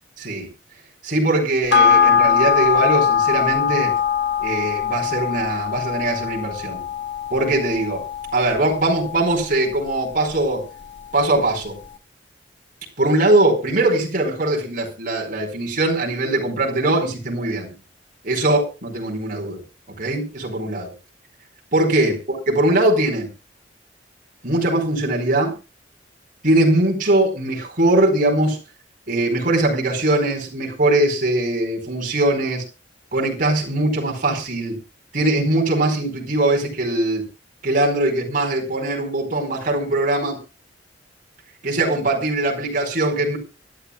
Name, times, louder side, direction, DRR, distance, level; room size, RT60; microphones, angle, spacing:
voice 1, 0.2-0.5 1.0-3.9 4.4-6.8 7.3-8.0 8.3-10.6 11.1-11.8 13.0-17.7 18.2-19.6 20.0-20.9 21.7-23.3 24.4-25.5 26.4-28.6 29.1-32.6 33.1-34.8 35.1-37.2 37.6-40.4 41.6-43.4, right 2 dB, 45° right, 0 dB, 4.8 m, -21 dB
sound 1, 1.7-10.5 10.8-10.9, left 7 dB, 65° left, 1.6 m, -21 dB
25.0 x 11.0 x 2.4 m, 0.30 s
head